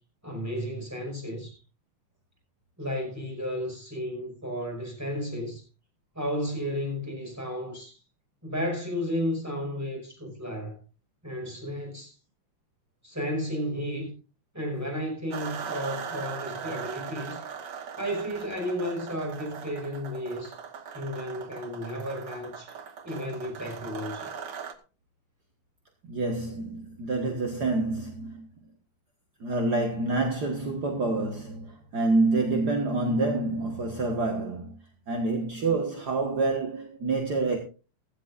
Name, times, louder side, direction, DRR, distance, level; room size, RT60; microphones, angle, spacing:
voice 1, 0.2-1.6 2.8-5.6 6.1-8.0 8.4-10.8 11.2-12.2 13.0-14.1 14.5-17.4 18.0-20.6 20.9-22.7 23.0-24.3, equal, 5° right, 5.7 m, -33 dB
sound 1, 15.3-24.7, right 6 dB, 60° right, 1.1 m, -39 dB
voice 2, 26.0-28.5 29.4-34.8 35.1-37.6, right 3 dB, 45° right, 1.5 m, -27 dB
16.0 x 15.5 x 2.5 m
omnidirectional pair, 3.7 m